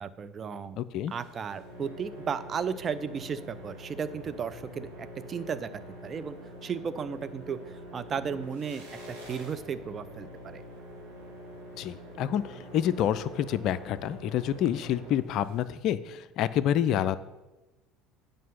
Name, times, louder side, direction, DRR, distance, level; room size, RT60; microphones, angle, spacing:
voice 1, 0.0-0.8 1.1-5.7 6.0-6.4 6.6-7.6 7.9-10.6, right 6 dB, 35° right, 13 dB, 0.6 m, -34 dB
voice 2, 0.8-1.1 11.8-17.2, left 10 dB, 55° left, 15 dB, 0.4 m, -28 dB
sound 1, 1.1-15.6, equal, 85° right, 1.9 m, -45 dB
9.2 x 5.2 x 5.8 m, 1.1 s
figure-of-eight pair, 65°, 0 cm